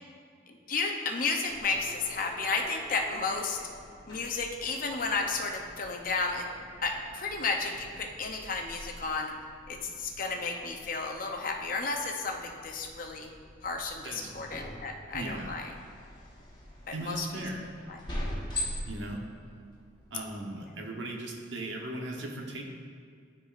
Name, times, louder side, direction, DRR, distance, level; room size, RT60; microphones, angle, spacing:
voice 1, 0.7-3.6 4.1-6.5 6.8-9.3 9.7-13.3 13.6-15.7 17.0-17.3, left 4 dB, 45° left, 3 dB, 0.6 m, -32 dB
sound 1, 1.5-20.4, left 1 dB, 25° left, 1.2 m, -44 dB
voice 2, 14.0-14.4 15.1-15.5 16.9-17.7 18.9-19.2 20.1-22.6, right 1 dB, 70° right, 1 dB, 0.9 m, -38 dB
12.0 x 4.7 x 2.5 m, 2.2 s
head